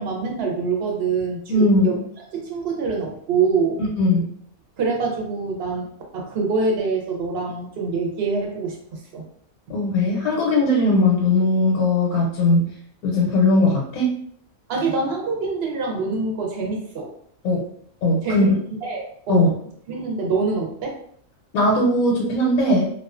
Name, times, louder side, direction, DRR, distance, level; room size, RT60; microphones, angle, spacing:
voice 1, 0.0-1.9 2.3-3.8 4.8-5.9 6.1-9.3 14.7-17.1 18.2-19.5 19.9-21.0 22.6-22.7, right 4 dB, 60° right, 0 dB, 0.7 m, -25 dB
voice 2, 1.5-1.9 3.8-4.3 9.7-12.7 13.0-14.1 17.4-17.7 18.0-18.5 19.3-19.5 21.5-22.9, left 2 dB, 85° left, -2 dB, 1.0 m, -19 dB
2.4 x 2.2 x 2.3 m, 0.62 s
omnidirectional pair, 1.5 m